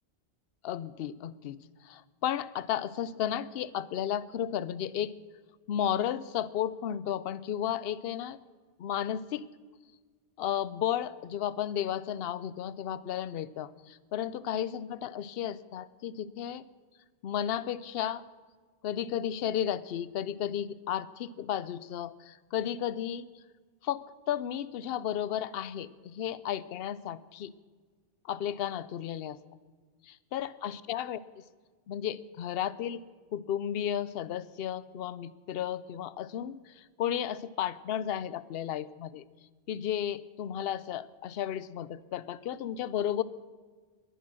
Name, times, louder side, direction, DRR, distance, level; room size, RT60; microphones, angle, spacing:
voice 1, 0.6-5.1 5.7-8.4 8.8-9.4 10.4-16.6 17.2-18.2 18.8-23.3 23.8-27.5 28.2-29.4 30.0-31.4 31.9-33.0 33.3-39.2 39.7-43.2, left 10 dB, 65° left, 17 dB, 0.8 m, -33 dB
21.5 x 10.5 x 6.2 m, 1.5 s
omnidirectional pair, 1.2 m